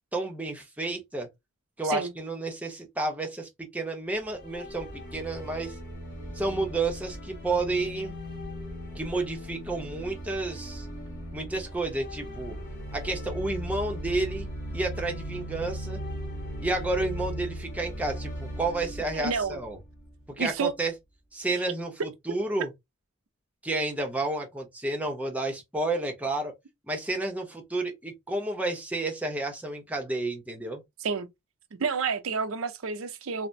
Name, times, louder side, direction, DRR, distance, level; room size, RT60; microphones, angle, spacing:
voice 1, 0.1-1.3 1.8-5.7 6.3-8.1 8.9-10.9 11.3-12.6 12.9-14.5 14.7-16.0 16.6-19.8 20.4-20.9 21.3-22.7 23.6-26.5 26.9-30.8, right 2 dB, 5° right, 0.8 m, -31 dB
sound 1, 4.1-20.2, equal, 50° left, 1.6 m, -38 dB
voice 2, 19.1-19.6 20.4-20.7 31.0-31.3 31.7-33.5, right 5 dB, 85° right, 0.6 m, -29 dB
3.3 x 2.1 x 2.6 m
head